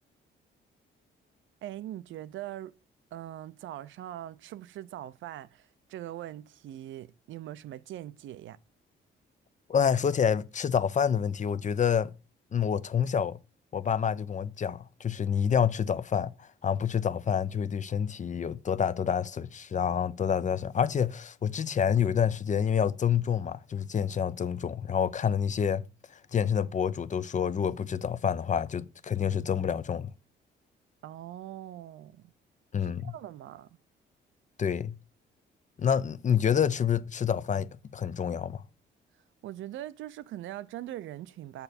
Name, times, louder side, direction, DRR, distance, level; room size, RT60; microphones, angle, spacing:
voice 1, 1.6-2.7 3.1-8.6 31.0-32.3 32.8-33.7 39.4-41.6, right 13 dB, 75° right, 0.6 m, -41 dB
voice 2, 9.7-12.1 12.5-13.4 13.7-16.3 16.6-25.8 26.3-30.1 32.7-33.1 34.6-35.0 35.8-38.6, left 8 dB, 40° left, 0.6 m, -28 dB
6.9 x 6.9 x 4.2 m
cardioid pair, 90°, 20 cm